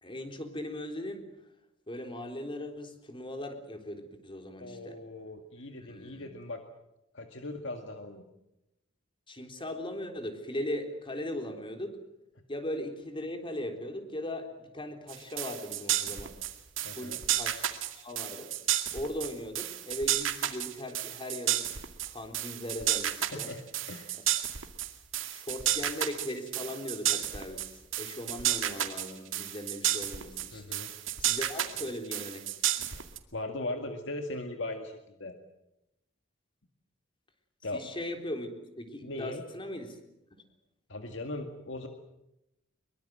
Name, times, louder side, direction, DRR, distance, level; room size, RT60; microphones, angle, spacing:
voice 1, 0.0-1.2 1.9-5.0 5.8-6.3 9.3-12.0 12.5-16.3 17.0-17.7 18.0-18.5 18.9-21.7 22.1-23.5 24.1-24.2 25.2-27.7 28.0-30.6 31.2-32.4 37.7-38.5 38.8-40.0, left 1 dB, 25° left, 5 dB, 3.8 m, -38 dB
voice 2, 4.6-6.6 7.1-8.2 16.8-17.2 23.3-24.2 30.5-30.9 32.8-33.0 33.3-35.3 37.6-37.9 39.0-39.4 40.9-41.9, left 2 dB, 65° left, 5 dB, 2.1 m, -39 dB
sound 1, 15.1-33.2, right 12 dB, 80° right, 2.3 m, -32 dB
24.0 x 23.0 x 7.8 m, 0.89 s
head